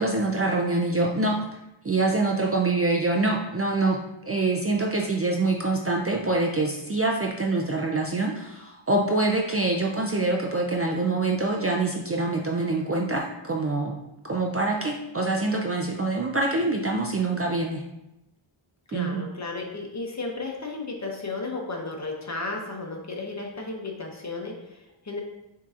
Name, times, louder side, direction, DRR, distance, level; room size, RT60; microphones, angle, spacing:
voice 1, 0.0-1.4 1.8-14.0 14.2-17.8 18.9-19.2, right 2 dB, 30° right, 0 dB, 0.4 m, -25 dB
voice 2, 18.9-25.2, left 3 dB, 35° left, 0 dB, 0.9 m, -34 dB
7.3 x 2.8 x 2.5 m, 0.90 s
wide cardioid pair, 90°, 50 cm